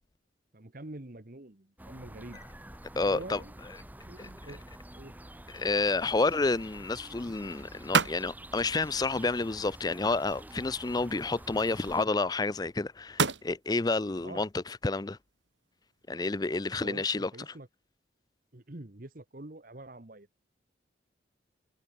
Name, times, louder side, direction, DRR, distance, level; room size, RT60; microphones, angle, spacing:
voice 1, 0.5-2.4 3.1-3.5 4.1-4.6 5.0-5.2 14.2-14.5 16.7-17.7 18.5-20.3, right 1 dB, 50° right, 1.4 m, -45 dB
sound 1, 1.8-12.1, right 1 dB, 10° right, 4.1 m, -48 dB
voice 2, 3.0-3.4 4.2-4.3 5.5-15.2 16.1-17.3, left 3 dB, 20° left, 0.5 m, -30 dB
sound 2, 4.0-16.8, right 5 dB, 80° right, 3.0 m, -38 dB
head